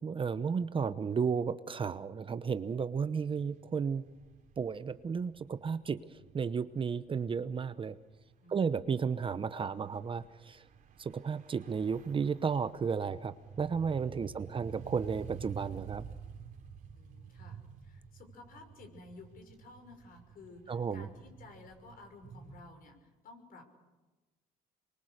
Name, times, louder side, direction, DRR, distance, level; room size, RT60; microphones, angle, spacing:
voice 1, 0.0-4.0 4.6-6.0 6.3-8.0 8.5-10.6 11.0-16.1 20.7-21.1, right 6 dB, 30° right, 12 dB, 0.9 m, -33 dB
sound 1, 3.2-22.6, right 6 dB, 55° right, 3.3 m, -51 dB
voice 2, 8.4-8.8 16.9-23.7, left 3 dB, 60° left, 5 dB, 5.9 m, -54 dB
27.0 x 23.5 x 6.7 m, 1.1 s
cardioid pair, 110°, 17 cm